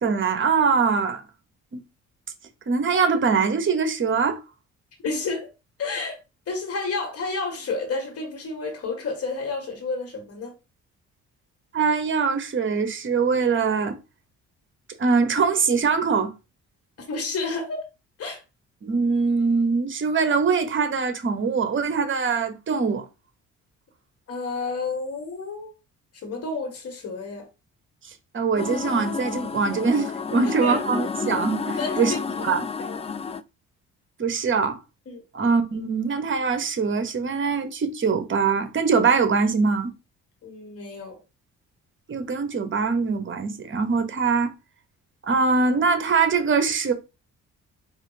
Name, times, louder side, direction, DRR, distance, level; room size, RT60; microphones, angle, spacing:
voice 1, 0.0-1.2 1.7-1.8 2.7-4.4 11.7-14.0 15.0-16.3 18.8-23.1 28.3-32.1 32.4-32.7 34.2-34.8 35.3-39.9 42.1-44.5 45.2-46.9, right 5 dB, 40° right, 1.0 m, -23 dB
voice 2, 5.0-5.5 5.8-6.2 6.5-10.5 17.0-17.9 18.2-18.4 24.3-25.7 26.2-27.5 30.4-30.8 31.8-32.2 32.5-32.6 32.8-33.0 35.1-35.2 40.4-41.2, left 3 dB, 50° left, 1.4 m, -30 dB
sound 1, 28.6-33.4, left 5 dB, 20° left, 0.3 m, -30 dB
4.0 x 2.6 x 3.8 m
cardioid pair, 90°, 30 cm